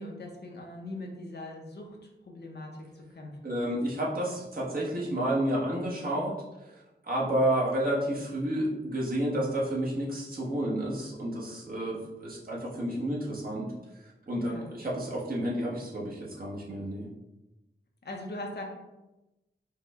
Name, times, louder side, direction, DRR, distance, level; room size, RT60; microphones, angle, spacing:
voice 1, 0.0-2.0 2.3-3.5 14.4-14.7 18.0-18.6, left 1 dB, 65° left, 1 dB, 0.8 m, -41 dB
voice 2, 3.4-6.3 6.6-6.7 7.0-13.7 14.3-17.1, right 1 dB, 50° right, -5 dB, 1.2 m, -30 dB
4.7 x 2.2 x 3.6 m, 0.99 s
wide cardioid pair, 85°, 18 cm